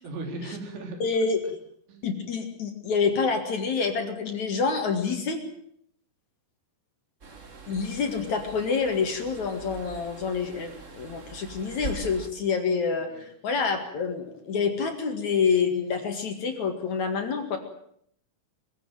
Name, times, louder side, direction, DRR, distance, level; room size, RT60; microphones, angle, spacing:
voice 1, 0.0-1.0 1.9-2.1 13.1-13.3, right 2 dB, 80° right, 5 dB, 5.5 m, -37 dB
voice 2, 1.0-1.4 2.0-5.4 7.7-17.6, left 5 dB, 50° left, 5 dB, 2.9 m, -27 dB
sound 1, 7.2-12.3, right 4 dB, 45° right, 0.9 m, -42 dB
22.5 x 16.0 x 9.1 m, 0.68 s
omnidirectional pair, 5.0 m